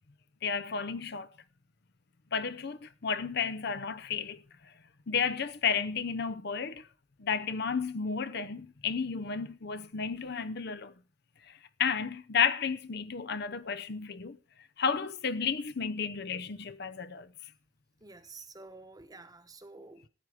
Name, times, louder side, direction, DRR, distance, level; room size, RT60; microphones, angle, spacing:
voice 1, 0.4-1.3 2.3-4.4 5.1-6.9 7.2-10.9 11.5-14.4 14.8-17.3, left 6 dB, 55° left, 0.7 m, -32 dB
voice 2, 18.0-20.1, right 3 dB, 20° right, 1.1 m, -50 dB
14.5 x 9.2 x 4.9 m
head